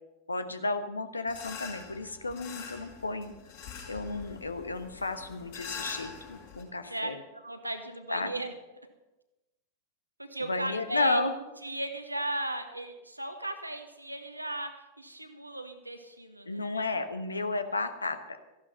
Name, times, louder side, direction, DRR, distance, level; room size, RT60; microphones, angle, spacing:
voice 1, 0.3-3.3 3.9-7.2 8.1-8.3 10.4-11.3 16.5-18.4, left 3 dB, 80° left, 10 dB, 1.2 m, -33 dB
sound 1, 1.3-6.6, left 6 dB, 55° left, 5.0 m, -44 dB
voice 2, 6.9-8.5 10.2-11.2 11.6-16.6, right 1 dB, 85° right, 7 dB, 1.4 m, -36 dB
14.5 x 11.0 x 5.6 m, 1.0 s
figure-of-eight pair, 90°, 0 cm